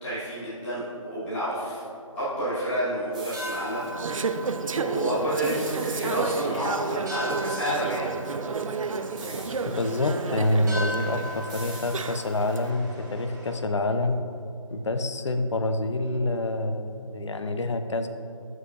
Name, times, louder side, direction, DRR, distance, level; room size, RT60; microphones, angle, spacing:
voice 1, 0.0-1.8 2.1-3.9 4.7-8.1, equal, 5° left, -13 dB, 1.1 m, -29 dB
sound 1, 2.8-13.6, equal, 35° right, 1.4 m, -39 dB
sound 2, 3.1-3.9 5.4-6.8 9.2-10.0 11.5-12.5, right 2 dB, 15° right, 0.8 m, -44 dB
Conversation / Chatter, 3.7-12.6, right 4 dB, 75° right, 0.4 m, -31 dB
voice 2, 9.7-14.2 14.7-18.1, left 2 dB, 60° left, 8 dB, 0.6 m, -27 dB
12.5 x 4.7 x 2.5 m, 2.6 s
figure-of-eight pair, 165°, 17 cm